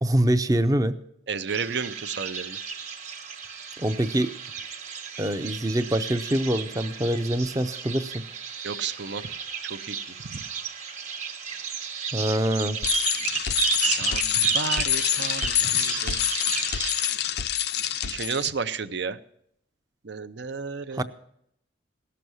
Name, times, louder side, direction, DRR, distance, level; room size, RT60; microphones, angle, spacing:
voice 1, 0.0-1.0 3.8-4.3 5.2-8.2 12.1-12.8 20.9-21.0, right 1 dB, 20° right, 10 dB, 0.6 m, -24 dB
voice 2, 1.3-2.6 8.6-9.3 9.6-10.0 10.2-10.4 13.8-16.2 18.0-19.2 20.0-21.0, right 6 dB, 65° right, 12 dB, 0.6 m, -32 dB
Birds in olive Grove In spain, 1.5-17.2, right 6 dB, 40° right, 1.2 m, -33 dB
Bicycle, 12.8-18.5, left 10 dB, 55° left, 0.5 m, -26 dB
17.5 x 6.8 x 6.2 m, 0.73 s
head